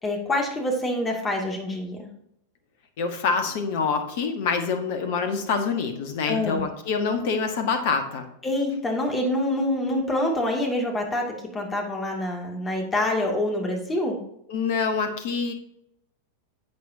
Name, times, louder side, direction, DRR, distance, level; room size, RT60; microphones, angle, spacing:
voice 1, 0.0-2.1 6.3-6.7 8.4-11.2 11.5-14.2, left 1 dB, 15° left, 1 dB, 2.5 m, -26 dB
voice 2, 3.0-8.2 14.5-15.5, left 5 dB, 50° left, 7 dB, 1.5 m, -26 dB
11.0 x 8.4 x 2.8 m, 0.76 s
figure-of-eight pair, 90°, 0 cm